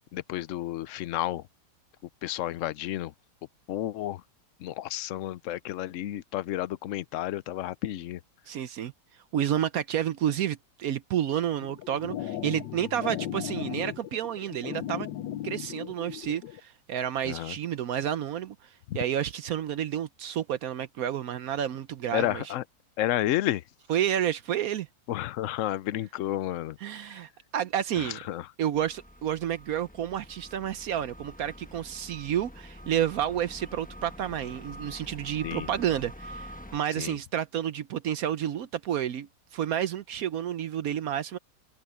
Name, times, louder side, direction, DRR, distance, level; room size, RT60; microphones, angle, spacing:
voice 1, 0.1-1.5 2.2-3.1 3.7-4.2 4.6-8.2 17.2-17.6 18.9-19.0 22.1-22.6 23.0-23.6 25.1-26.8 28.0-28.5 35.4-35.7 37.0-37.2, left 13 dB, 65° left, 0.8 m, -31 dB
voice 2, 8.5-8.9 9.3-15.1 15.4-18.6 18.9-22.4 23.9-24.9 26.8-28.2 28.6-41.4, right 10 dB, 65° right, 1.0 m, -30 dB
sound 1, 11.6-16.6, left 11 dB, 85° left, 1.4 m, -36 dB
sound 2, 28.7-36.8, equal, 5° left, 0.9 m, -46 dB
omnidirectional pair, 1.8 m